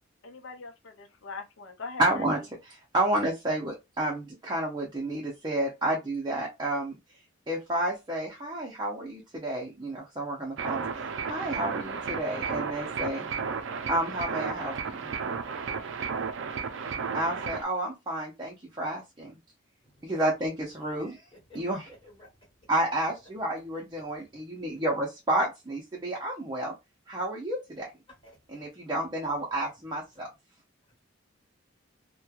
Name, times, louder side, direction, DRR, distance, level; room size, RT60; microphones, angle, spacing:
voice 1, 0.2-2.2, left 4 dB, 70° left, 0.6 m, -41 dB
voice 2, 2.0-7.0 7.5-13.3 13.9-15.1 17.1-19.4 20.0-21.2 21.5-21.9 22.7-26.7 27.1-27.9 28.5-30.3, right 1 dB, 20° right, 0.6 m, -30 dB
sound 1, 10.6-17.6, right 5 dB, 65° right, 0.4 m, -33 dB
voice 3, 19.8-20.3 21.5-21.6 21.9-22.3 28.2-28.6, equal, 25° left, 1.3 m, -52 dB
3.0 x 2.2 x 2.3 m
head